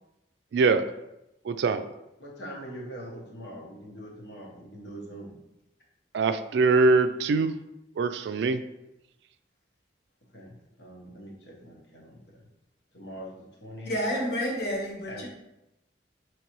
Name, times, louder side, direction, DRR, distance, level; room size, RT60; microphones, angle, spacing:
voice 1, 0.5-0.8 1.4-1.8 6.1-7.5 8.0-8.6, right 4 dB, 75° right, 10 dB, 0.3 m, -23 dB
voice 2, 2.2-5.4 10.3-12.5 12.9-13.9 15.1-15.3, equal, 75° left, -3 dB, 1.1 m, -43 dB
voice 3, 13.8-15.3, equal, 60° left, -2 dB, 1.2 m, -29 dB
5.2 x 3.2 x 3.0 m, 0.90 s
head